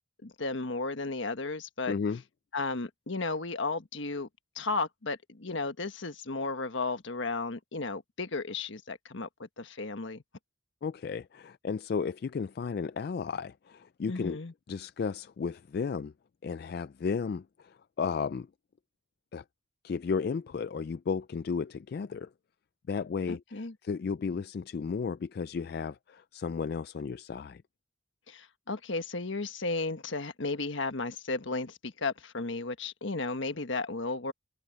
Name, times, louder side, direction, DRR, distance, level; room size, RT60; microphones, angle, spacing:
voice 1, 0.2-1.9 2.5-4.3 4.5-10.2 14.1-14.5 23.3-23.7 28.3-34.3, left 3 dB, 70° left, 1.4 m, -34 dB
voice 2, 1.9-2.2 10.8-14.4 14.7-16.1 16.4-18.5 19.3-19.4 19.8-22.3 22.9-27.6, left 5 dB, 50° left, 0.3 m, -34 dB
head